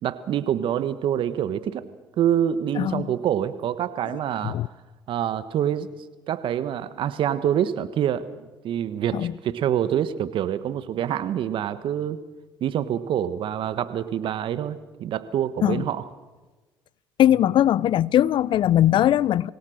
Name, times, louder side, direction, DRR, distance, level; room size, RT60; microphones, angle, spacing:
voice 1, 0.0-1.8 2.2-4.6 5.1-5.9 6.3-12.2 12.6-16.1, right 10 dB, 60° right, 1.4 m, -26 dB
voice 2, 2.8-3.1 4.4-4.7 9.1-9.3 15.6-15.8 17.2-19.5, left 12 dB, 55° left, 0.6 m, -20 dB
25.5 x 18.0 x 6.6 m
hypercardioid pair, 65°, 10 cm